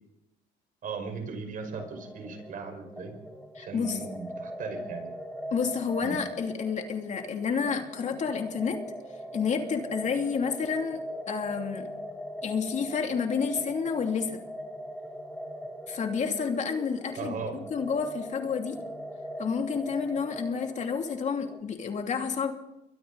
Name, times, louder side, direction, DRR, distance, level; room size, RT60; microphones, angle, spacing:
voice 1, 0.8-3.1 3.6-5.1 6.0-6.2 17.2-17.5, right 4 dB, 55° right, 5 dB, 5.4 m, -37 dB
sound 1, 1.7-21.6, equal, 5° left, 2.7 m, -41 dB
voice 2, 3.6-4.0 5.5-8.8 9.3-11.9 12.4-14.4 15.9-18.8 19.4-22.5, left 6 dB, 45° left, 4 dB, 3.0 m, -30 dB
29.5 x 23.0 x 4.1 m, 0.89 s
cardioid pair, 110°, 17 cm